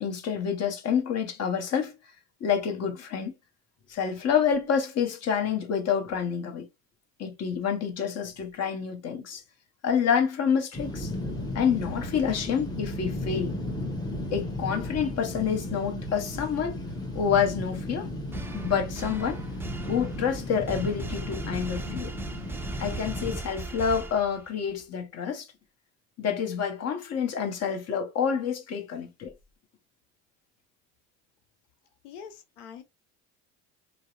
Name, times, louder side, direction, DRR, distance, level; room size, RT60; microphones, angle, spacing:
voice 1, 0.0-1.9 2.4-3.3 3.9-6.7 7.2-9.4 9.8-11.1 11.5-13.6 14.3-16.8 17.1-18.1 18.5-19.4 19.9-22.1 22.8-25.5 26.2-29.3, left 7 dB, 45° left, 0.8 m, -28 dB
sound 1, 10.7-23.4, left 1 dB, 10° left, 0.9 m, -35 dB
sound 2, 18.3-24.7, right 3 dB, 5° right, 0.3 m, -38 dB
voice 2, 32.0-32.8, left 7 dB, 85° left, 0.6 m, -44 dB
2.7 x 2.0 x 2.3 m
hypercardioid pair, 75°, 36 cm